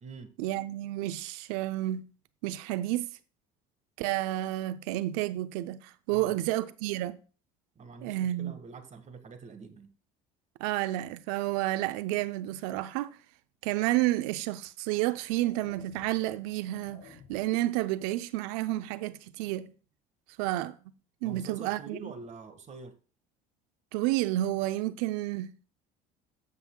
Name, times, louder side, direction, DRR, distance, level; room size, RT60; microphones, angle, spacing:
voice 1, 0.4-2.0 2.4-3.2 4.0-7.2 8.0-8.5 10.6-13.2 13.6-19.7 20.4-20.8 21.2-22.1 23.9-25.7, right 15 dB, 80° right, 0.6 m, -30 dB
voice 2, 7.7-9.9 21.2-22.9, right 4 dB, 40° right, 1.6 m, -45 dB
sound 1, 14.0-14.1 14.9-17.7, left 5 dB, 50° left, 2.2 m, -56 dB
16.0 x 5.6 x 2.2 m
supercardioid pair, 80°, 18 cm